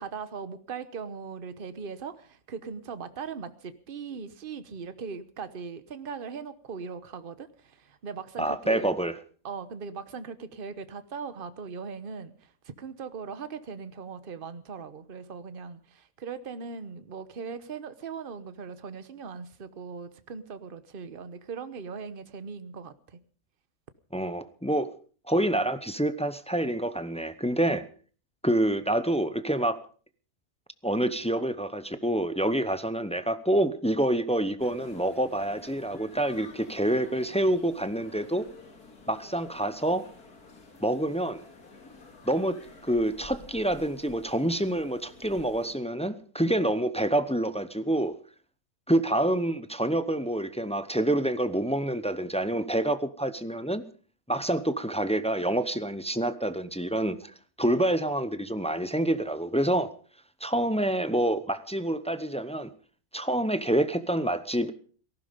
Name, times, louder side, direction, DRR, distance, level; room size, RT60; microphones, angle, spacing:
voice 1, 0.0-8.9 9.4-23.2, right 5 dB, 40° right, 1.2 m, -39 dB
voice 2, 8.4-9.1 24.1-24.9 25.3-27.8 28.4-29.8 30.8-38.4 39.1-40.0 40.8-41.4 42.3-48.2 48.9-53.8 54.3-57.3 57.6-59.9 60.4-62.7 63.1-64.7, right 1 dB, 5° left, 0.5 m, -27 dB
sound 1, 34.6-45.7, left 3 dB, 80° left, 3.1 m, -50 dB
18.0 x 15.5 x 5.2 m
omnidirectional pair, 1.6 m